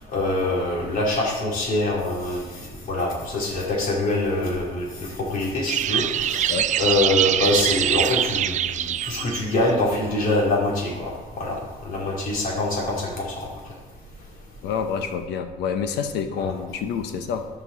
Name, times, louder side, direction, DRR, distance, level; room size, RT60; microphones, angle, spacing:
voice 1, 0.1-2.4 2.9-11.6 11.8-13.3 16.4-16.5, left 2 dB, 55° left, -3 dB, 3.1 m, -24 dB
sound 1, 5.7-9.4, right 11 dB, 45° right, 0.4 m, -23 dB
voice 2, 14.6-17.5, left 6 dB, 85° left, 7 dB, 1.0 m, -28 dB
13.5 x 5.5 x 4.1 m, 1.2 s
cardioid pair, 110°, 17 cm